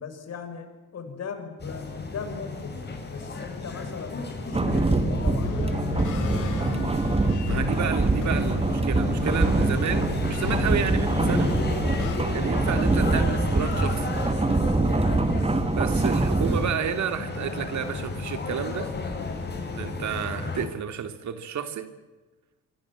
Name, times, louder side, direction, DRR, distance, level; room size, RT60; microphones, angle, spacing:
voice 1, 0.0-6.2 14.7-15.2, left 5 dB, 55° left, 6.2 m, -39 dB
sound 1, 1.6-20.6, left 3 dB, 35° left, 7.4 m, -34 dB
sound 2, 4.5-16.7, right 2 dB, 20° right, 2.2 m, -24 dB
sound 3, 5.4-15.8 16.4-17.5 17.9-20.3, left 7 dB, 85° left, 6.2 m, -36 dB
voice 2, 7.5-11.5 12.3-14.1 15.7-18.9 19.7-21.9, right 8 dB, 70° right, 3.0 m, -31 dB
26.0 x 25.0 x 7.7 m
cardioid pair, 90°, 30 cm